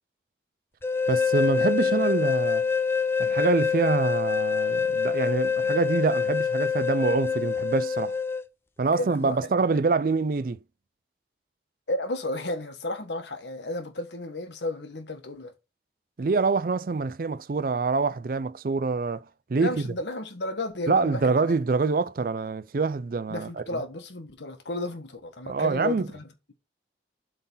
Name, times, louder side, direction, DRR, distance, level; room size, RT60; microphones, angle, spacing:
sound 1, 0.8-8.4, left 6 dB, 15° left, 0.4 m, -25 dB
voice 1, 1.1-2.7 3.2-8.1 8.8-10.6 16.2-19.2 19.5-19.9 20.9-23.8 25.5-26.1, right 4 dB, 50° right, 0.4 m, -25 dB
voice 2, 8.9-9.4 11.9-15.5 19.6-21.5 23.3-26.5, left 2 dB, 80° left, 1.6 m, -33 dB
8.0 x 3.9 x 5.5 m
head